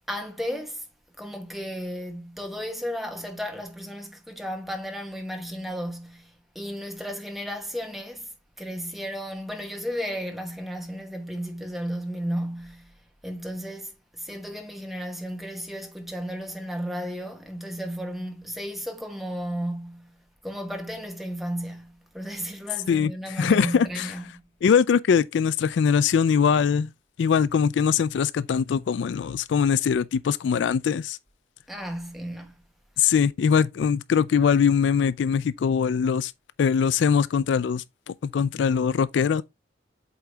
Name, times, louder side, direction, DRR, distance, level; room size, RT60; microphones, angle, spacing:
voice 1, 0.1-0.8 1.2-8.3 8.6-12.9 13.2-20.1 20.4-24.2 31.7-32.5, equal, ahead, 1.1 m, -34 dB
voice 2, 22.9-24.1 24.6-26.9 27.2-31.2 33.0-36.3 36.6-39.4, left 7 dB, 70° left, 0.3 m, -22 dB
8.1 x 3.9 x 3.4 m
head